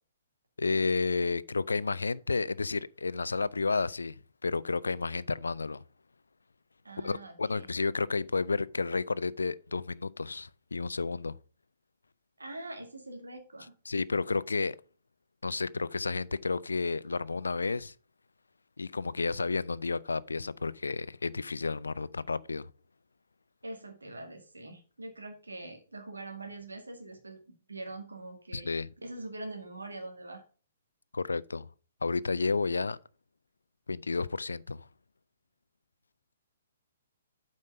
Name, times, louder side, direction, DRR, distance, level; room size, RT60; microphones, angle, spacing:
voice 1, 0.6-5.8 7.0-11.3 13.9-14.8 15.4-17.9 18.8-22.7 28.5-28.9 31.1-31.7 32.0-33.0 33.9-34.9, left 4 dB, 75° left, 0.4 m, -31 dB
voice 2, 6.8-7.7 12.4-13.7 23.6-27.4 27.7-28.8 29.0-30.4, right 2 dB, 75° right, 2.1 m, -43 dB
8.4 x 5.3 x 5.1 m
figure-of-eight pair, 120°, 0 cm